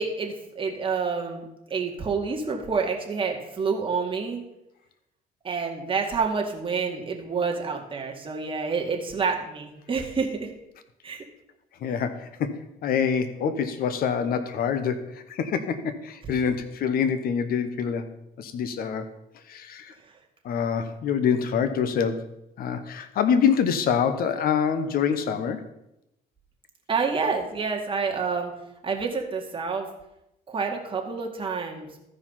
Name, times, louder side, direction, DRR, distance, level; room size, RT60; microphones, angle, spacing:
voice 1, 0.0-1.4 1.7-4.4 5.4-10.5 11.0-11.2 26.9-28.5 28.8-29.9 30.5-31.9, right 5 dB, 30° right, 1 dB, 2.0 m, -28 dB
voice 2, 11.8-18.1 18.4-19.1 19.5-19.9 20.4-22.3 22.6-25.6, left 7 dB, 60° left, 10 dB, 1.0 m, -26 dB
14.0 x 4.9 x 5.5 m, 0.86 s
cardioid pair, 110°, 17 cm